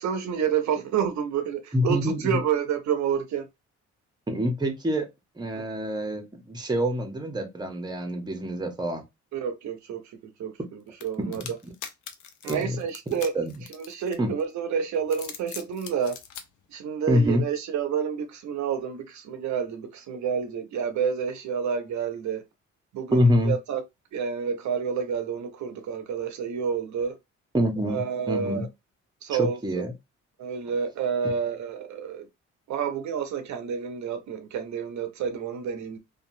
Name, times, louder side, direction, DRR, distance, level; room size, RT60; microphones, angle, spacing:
voice 1, 0.0-3.5 5.5-5.6 9.3-11.4 12.4-13.3 13.7-16.2 16.7-22.4 22.9-23.8 24.1-27.2 27.9-28.7 29.2-29.8 30.4-32.3 32.7-36.0, right 7 dB, 70° right, 0.7 m, -29 dB
voice 2, 1.7-2.3 4.3-5.1 5.4-9.0 11.2-11.4 12.4-12.8 13.1-13.5 14.2-14.3 17.1-17.4 23.1-23.5 27.5-28.0 28.3-28.7 29.4-29.9, equal, 15° right, 0.8 m, -26 dB
sound 1, 11.0-14.5 15.0-16.4, left 8 dB, 75° left, 0.6 m, -41 dB
2.7 x 2.3 x 2.6 m
cardioid pair, 90°, 30 cm